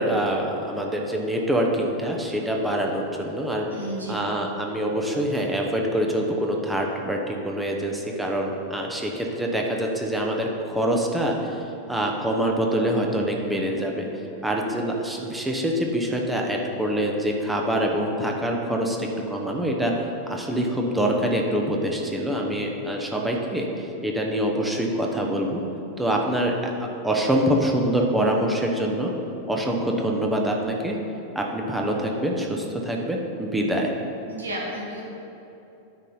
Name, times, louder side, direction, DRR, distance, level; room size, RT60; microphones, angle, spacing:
voice 1, 0.0-3.7 4.1-14.1 14.4-19.9 20.3-25.6 26.0-29.1 29.5-31.0 31.3-33.9, right 1 dB, 5° right, 0 dB, 0.9 m, -25 dB
voice 2, 3.7-4.2 34.3-35.0, right 1 dB, 75° right, -2 dB, 1.7 m, -32 dB
9.2 x 4.2 x 5.5 m, 3.0 s
figure-of-eight pair, 90°, 0 cm